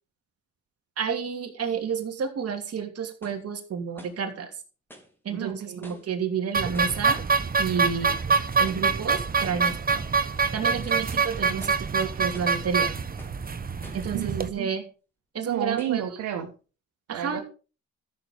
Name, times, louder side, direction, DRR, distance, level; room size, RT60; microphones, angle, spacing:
voice 1, 1.0-4.5 5.2-7.2 7.6-8.2 8.6-10.0 10.5-12.9 13.9-14.8 15.3-16.0 17.1-17.4, right 6 dB, 55° right, 5 dB, 2.9 m, -30 dB
sound 1, 2.2-2.3 3.2-3.5 3.9-4.3 4.9-5.2 5.8-6.2 6.7-7.0 7.8-8.1 8.7-8.9 9.4-9.7 10.1-10.2 10.7-11.2 11.6-11.9 12.3-12.6 13.2-13.5 13.8-14.1 14.8-14.9 15.8-16.0, equal, 5° left, 3.0 m, -49 dB
voice 2, 5.3-5.8 10.7-11.0 14.1-14.3 15.4-16.5 17.1-17.4, right 10 dB, 80° right, 2 dB, 1.9 m, -32 dB
sound 2, 6.5-14.5, right 5 dB, 30° right, 1.2 m, -25 dB
13.5 x 6.8 x 5.4 m, 0.35 s
cardioid pair, 90°, 30 cm